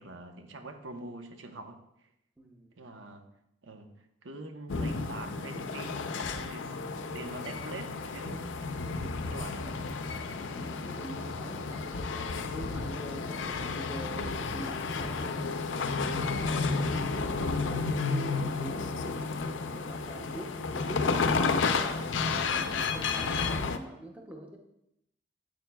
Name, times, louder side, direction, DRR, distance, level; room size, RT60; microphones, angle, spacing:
voice 1, 0.0-1.8 2.8-3.2 3.6-6.8 7.1-8.8 9.3-9.9, right 2 dB, 85° right, 5 dB, 0.9 m, -44 dB
voice 2, 2.4-2.9 9.0-9.8 10.0-10.2 10.5-15.6 16.0-21.6 21.8-24.6, right 1 dB, 10° right, 1 dB, 0.7 m, -45 dB
sound 1, 4.7-23.8, left 4 dB, 85° left, 0.5 m, -32 dB
8.9 x 8.0 x 2.3 m, 0.80 s
head